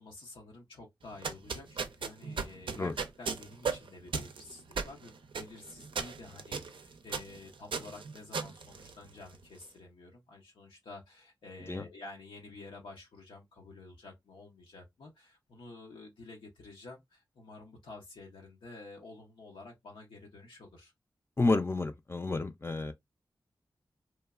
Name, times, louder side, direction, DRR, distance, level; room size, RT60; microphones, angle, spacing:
voice 1, 0.0-20.9, left 3 dB, 90° left, 0.6 m, -50 dB
sound 1, 1.0-9.4, right 5 dB, 75° right, 0.4 m, -37 dB
voice 2, 21.4-22.9, left 3 dB, 30° left, 0.4 m, -30 dB
3.0 x 2.2 x 2.3 m
cardioid pair, 45°, 9 cm